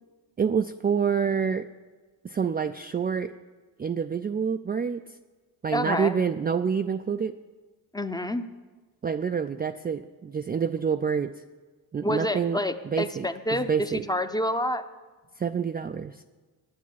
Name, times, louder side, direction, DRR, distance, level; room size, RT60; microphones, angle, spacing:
voice 1, 0.4-1.7 2.2-3.3 3.8-5.0 5.6-7.3 9.0-11.3 11.9-12.6 12.9-14.0 15.4-16.2, right 6 dB, 25° right, 8 dB, 0.3 m, -27 dB
voice 2, 5.7-6.2 7.9-8.5 12.0-14.8, left 1 dB, 10° left, 9 dB, 0.7 m, -28 dB
9.3 x 8.5 x 9.2 m, 1.3 s
cardioid pair, 80°, 39 cm